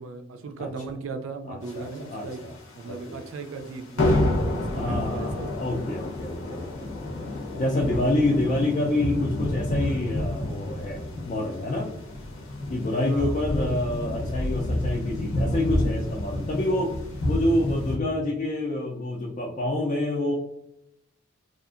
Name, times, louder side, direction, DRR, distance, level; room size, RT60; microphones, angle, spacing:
voice 1, 0.0-2.4 2.7-5.6 13.0-13.5, right 3 dB, 70° right, 7 dB, 0.4 m, -37 dB
voice 2, 1.5-2.6 2.9-3.2 4.7-7.1 7.6-11.9 12.7-16.9 17.3-20.3, left 1 dB, 35° left, -3 dB, 0.3 m, -27 dB
sound 1, 1.8-2.7 3.0-3.2 3.5-3.7 4.0-18.0, left 1 dB, 85° left, 0.8 m, -29 dB
2.7 x 2.4 x 2.4 m, 0.80 s
head